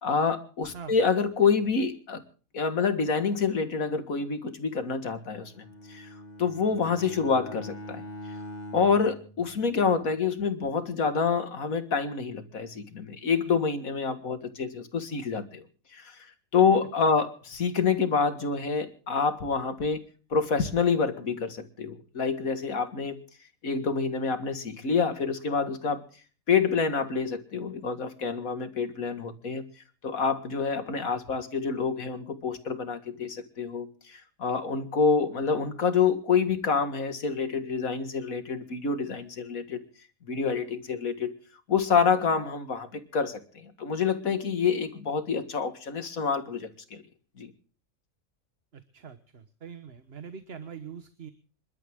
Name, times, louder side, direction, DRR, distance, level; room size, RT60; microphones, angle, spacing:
voice 1, 0.0-2.2 2.5-8.4 8.7-23.2 23.6-39.8 40.2-41.3 41.7-47.0 47.4-47.5, left 5 dB, 80° left, 9 dB, 2.3 m, -27 dB
Bowed string instrument, 5.4-10.0, left 1 dB, 30° left, 1.8 m, -43 dB
voice 2, 48.7-51.3, right 7 dB, 50° right, 10 dB, 1.4 m, -43 dB
27.5 x 12.5 x 3.6 m, 0.39 s
omnidirectional pair, 1.4 m